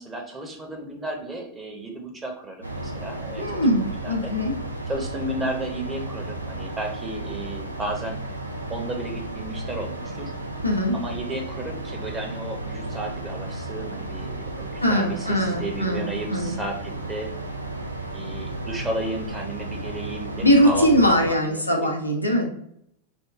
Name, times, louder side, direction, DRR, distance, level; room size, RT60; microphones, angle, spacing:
voice 1, 0.0-4.3 4.9-8.2 8.7-10.3 10.9-17.3 18.1-20.9 21.2-21.9, right 1 dB, 15° right, 2 dB, 0.8 m, -33 dB
sound 1, 2.6-21.3, right 2 dB, 85° right, 0.5 m, -34 dB
voice 2, 3.4-4.6 10.6-11.0 14.8-16.6 20.4-22.5, equal, 90° left, 1 dB, 0.6 m, -21 dB
3.5 x 2.2 x 3.4 m, 0.70 s
figure-of-eight pair, 90°, 0 cm